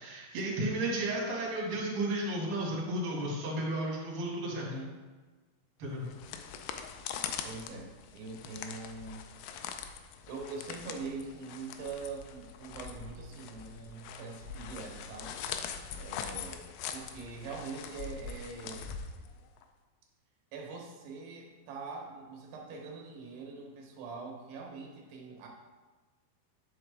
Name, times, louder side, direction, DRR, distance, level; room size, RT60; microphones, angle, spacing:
voice 1, 0.0-4.7 5.8-6.1, right 1 dB, 40° right, -5 dB, 2.2 m, -33 dB
voice 2, 4.5-5.0 7.4-9.3 10.3-15.4 16.0-18.9 20.5-25.5, right 4 dB, 80° right, 0 dB, 3.0 m, -43 dB
sound 1, 5.9-19.6, left 7 dB, 80° left, 2.2 m, -42 dB
8.8 x 5.8 x 3.4 m, 1.3 s
omnidirectional pair, 4.7 m